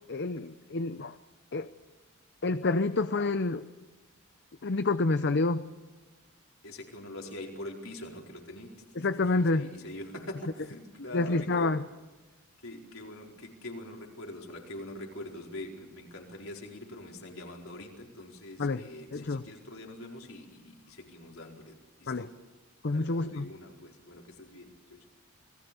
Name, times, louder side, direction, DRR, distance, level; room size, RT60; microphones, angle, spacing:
voice 1, 0.1-1.2 1.5-1.7 2.4-3.6 4.6-5.7 9.0-9.7 11.1-11.8 18.6-18.8 19.1-19.4 22.1-22.3 22.8-23.5, left 3 dB, 50° left, 11 dB, 0.7 m, -28 dB
voice 2, 6.6-8.7 9.4-11.8 12.6-22.3 22.9-25.1, left 1 dB, 70° left, 0 dB, 4.6 m, -44 dB
29.0 x 20.0 x 7.0 m, 1.2 s
head